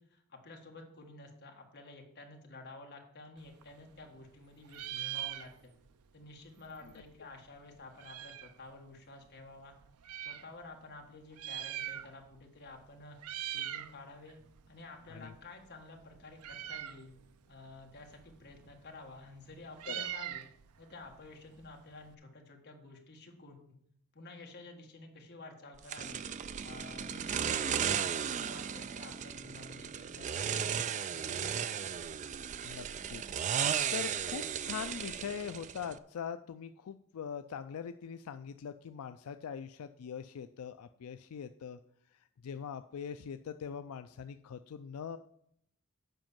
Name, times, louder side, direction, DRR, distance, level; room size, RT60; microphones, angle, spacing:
voice 1, 0.0-5.7 6.1-9.7 10.2-13.2 13.4-14.4 14.7-17.2 17.5-20.5 20.8-23.8 24.1-26.2 26.6-32.0, left 2 dB, 50° left, 2 dB, 1.5 m, -51 dB
Meow, 3.4-4.4 4.6-5.9 6.2-6.3 6.5-8.6 9.3-10.5 11.2-12.4 12.7-12.9 13.2-13.9 14.3-22.1, right 12 dB, 90° right, 0.5 m, -43 dB
sound 1, 25.9-36.0, right 8 dB, 35° right, 0.3 m, -35 dB
voice 2, 32.6-41.8 42.4-45.2, left 7 dB, 85° left, 10 dB, 0.4 m, -42 dB
7.8 x 5.2 x 7.3 m, 0.71 s
head